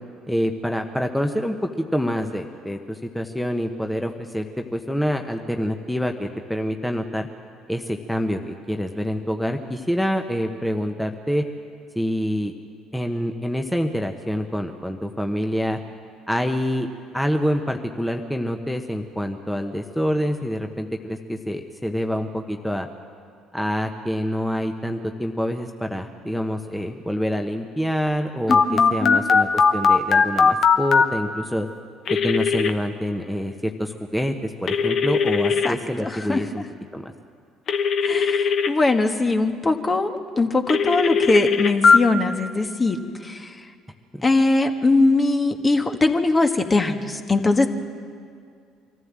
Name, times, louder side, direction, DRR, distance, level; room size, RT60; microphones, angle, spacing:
voice 1, 0.3-7.3 7.7-11.4 11.9-12.5 12.9-15.8 16.3-16.9 17.1-22.9 23.5-31.7 32.1-36.6 36.9-37.1 44.1-44.2, equal, 5° left, 4 dB, 1.3 m, -26 dB
Telephone, 28.5-31.1 32.1-32.7 34.7-35.7 37.7-38.7 40.7-42.0, left 5 dB, 50° left, 1.2 m, -18 dB
voice 2, 28.7-29.3 35.6-36.4 38.0-43.5 44.2-47.7, left 2 dB, 25° left, 6 dB, 1.6 m, -21 dB
24.0 x 14.5 x 7.5 m, 2.2 s
hypercardioid pair, 55°, 0 cm